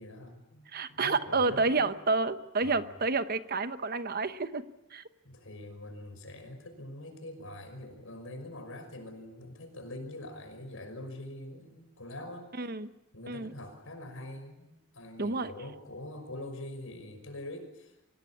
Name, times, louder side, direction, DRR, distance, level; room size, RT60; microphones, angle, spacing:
voice 1, 0.0-1.8 2.6-2.9 5.2-12.5 13.1-17.9, left 1 dB, 75° left, 6 dB, 5.8 m, -44 dB
voice 2, 0.7-4.6 4.9-5.0 12.6-12.9 13.3-13.5 15.2-15.5, right 3 dB, 45° right, 11 dB, 1.0 m, -29 dB
25.5 x 18.0 x 8.6 m, 0.95 s
head